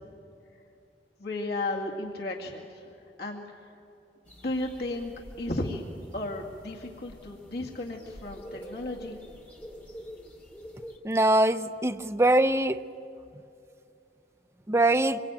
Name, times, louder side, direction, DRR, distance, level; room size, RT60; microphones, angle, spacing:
voice 1, 1.2-2.9 3.2-3.7 4.3-5.8 6.1-9.2, left 2 dB, 60° left, -1 dB, 2.2 m, -34 dB
sound 1, 4.3-11.0, equal, 10° left, 2.5 m, -47 dB
voice 2, 11.0-12.8 14.7-15.2, right 1 dB, 15° right, 8 dB, 0.6 m, -23 dB
26.0 x 23.0 x 9.0 m, 2.7 s
head